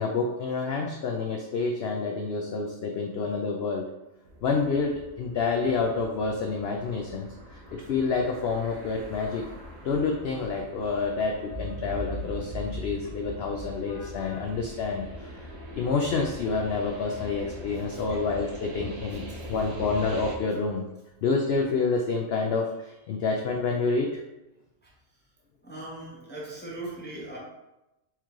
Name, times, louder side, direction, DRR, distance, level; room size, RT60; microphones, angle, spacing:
voice 1, 0.0-3.9 4.4-9.5 9.8-15.5 15.8-19.2 19.5-20.8 21.2-24.2, left 4 dB, 70° left, 2 dB, 0.6 m, -28 dB
sound 1, 4.2-20.4, equal, 60° right, 1.3 m, -43 dB
Boom, 11.4-15.7, equal, 20° right, 1.2 m, -39 dB
voice 2, 17.7-18.2 19.3-19.7 24.8-24.9 25.6-27.4, right 2 dB, 10° left, -4 dB, 0.7 m, -40 dB
4.5 x 3.1 x 3.6 m, 0.95 s
omnidirectional pair, 1.5 m